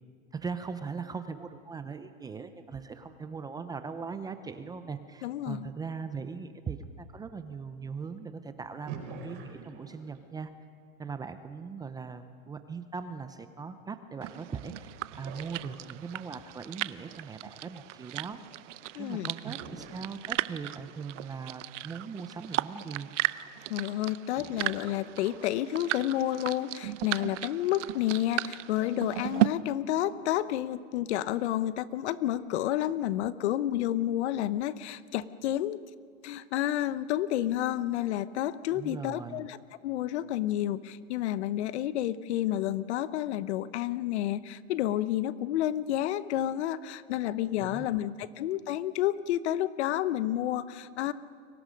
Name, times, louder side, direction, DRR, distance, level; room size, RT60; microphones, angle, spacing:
voice 1, 0.3-9.0 9.2-10.5 11.0-18.4 19.0-23.1 38.7-39.5 47.6-48.0, right 5 dB, 10° right, 10 dB, 0.6 m, -40 dB
voice 2, 5.2-5.7 18.9-19.3 23.7-35.8 36.2-39.6 39.8-51.1, left 13 dB, 55° left, 16 dB, 0.9 m, -30 dB
sound 1, 8.9-10.3 14.3-14.4 15.1-16.3 19.4-20.7 22.1-22.2 22.6-22.7 24.4-25.6, right 5 dB, 40° right, 4.9 m, -45 dB
sound 2, 14.2-29.5, right 16 dB, 65° right, 0.8 m, -35 dB
30.0 x 23.5 x 5.2 m, 2.1 s
hypercardioid pair, 140°, 40 cm